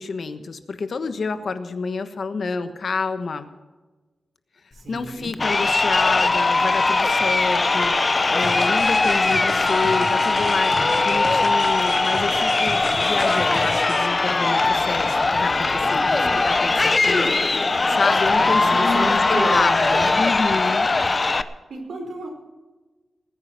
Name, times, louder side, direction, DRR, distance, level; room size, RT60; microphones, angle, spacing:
voice 1, 0.0-3.5 4.9-7.9 8.3-17.4 17.9-19.8 20.1-20.9, left 4 dB, 55° left, 10 dB, 1.2 m, -28 dB
voice 2, 4.7-5.3 18.6-20.1 21.7-22.3, right 2 dB, 75° right, 2 dB, 4.7 m, -30 dB
Crowd, 5.3-21.4, left 3 dB, 30° left, 0.7 m, -20 dB
sound 1, 8.4-14.1, right 3 dB, 55° right, 1.7 m, -37 dB
20.5 x 9.6 x 5.9 m, 1.2 s
wide cardioid pair, 135°, 0 cm